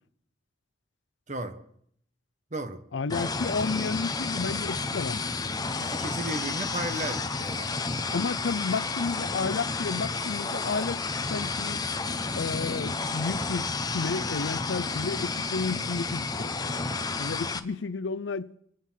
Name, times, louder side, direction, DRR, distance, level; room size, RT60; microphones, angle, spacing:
voice 1, 1.3-1.6 2.5-2.8 5.8-7.7, right 1 dB, 40° right, 1.3 m, -34 dB
voice 2, 2.9-5.2 8.1-11.0 11.3-11.8 12.3-16.5 17.2-18.5, left 4 dB, 80° left, 0.6 m, -32 dB
sound 1, 3.1-17.6, left 4 dB, 20° left, 0.8 m, -31 dB
26.0 x 9.5 x 5.8 m
head